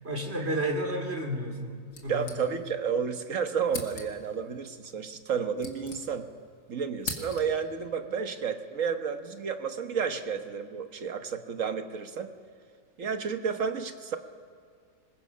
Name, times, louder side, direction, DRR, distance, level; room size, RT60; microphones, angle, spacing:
voice 1, 0.0-2.3, right 1 dB, 40° right, 3 dB, 2.9 m, -31 dB
sound 1, 1.9-2.9 3.2-3.3 3.7-4.4 5.2-6.5 6.7-7.7, left 3 dB, 70° left, 2.5 m, -41 dB
voice 2, 2.1-6.3 6.7-12.3 13.0-14.2, right 6 dB, 55° right, 7 dB, 1.5 m, -31 dB
26.0 x 21.0 x 5.7 m, 2.2 s
omnidirectional pair, 1.7 m